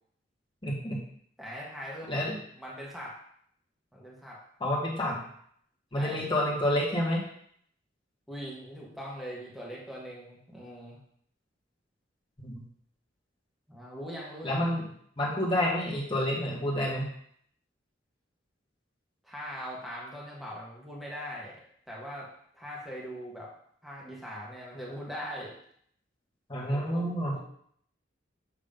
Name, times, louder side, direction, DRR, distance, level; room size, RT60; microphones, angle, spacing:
voice 1, 0.6-1.0 2.1-2.4 4.6-5.2 5.9-7.2 12.4-12.6 14.4-14.8 15.2-17.1 26.5-27.4, left 1 dB, 25° left, -3 dB, 1.6 m, -29 dB
voice 2, 1.4-2.2 2.5-3.1 3.9-4.4 5.9-6.3 8.3-11.0 13.7-14.7 19.2-21.6 21.9-22.3 22.5-23.5 23.8-25.5 26.6-27.0 27.3-27.4, equal, ahead, -5 dB, 1.4 m, -41 dB
7.2 x 3.2 x 5.2 m, 0.65 s
head